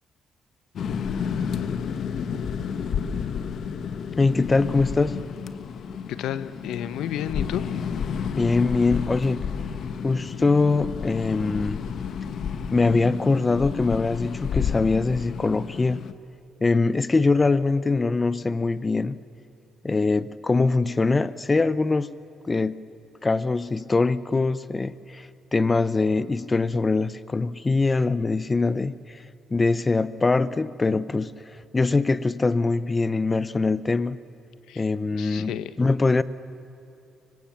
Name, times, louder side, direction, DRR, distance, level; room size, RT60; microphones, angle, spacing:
sound 1, 0.8-16.1, left 7 dB, 60° left, 1.3 m, -31 dB
voice 1, 4.2-5.2 8.4-9.5 10.0-11.8 12.7-16.0 16.6-19.2 19.8-22.1 22.5-22.8 23.2-29.2 29.5-34.2 34.8-36.2, left 3 dB, 20° left, 0.8 m, -23 dB
voice 2, 6.1-7.6 34.7-34.8 35.1-35.7, left 11 dB, 85° left, 1.0 m, -31 dB
25.5 x 24.5 x 7.4 m
cardioid pair, 105°, 0 cm